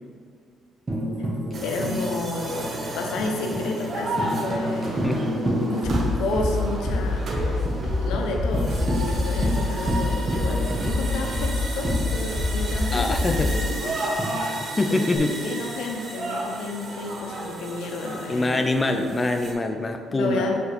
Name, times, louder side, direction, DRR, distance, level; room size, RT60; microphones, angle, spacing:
Tambourine, 0.9-6.6 6.9-7.0 7.3-7.8 8.1-8.2 8.5-12.7 14.2-15.2, equal, 25° right, 1.4 m, -30 dB
sound 1, 1.5-19.5, right 2 dB, 45° right, 1.1 m, -33 dB
voice 1, 1.6-2.7 2.9-5.1 5.7-14.0 14.4-14.6 14.9-19.1 20.1-20.6, left 2 dB, 90° left, 2 dB, 0.9 m, -31 dB
voice 2, 5.0-5.4 12.9-13.5 14.6-15.4 18.3-20.6, left 2 dB, 20° left, 5 dB, 0.4 m, -24 dB
sound 2, 5.8-13.7, left 2 dB, 5° right, 1.7 m, -26 dB
5.6 x 3.7 x 6.0 m, 2.1 s
cardioid pair, 130°, 0 cm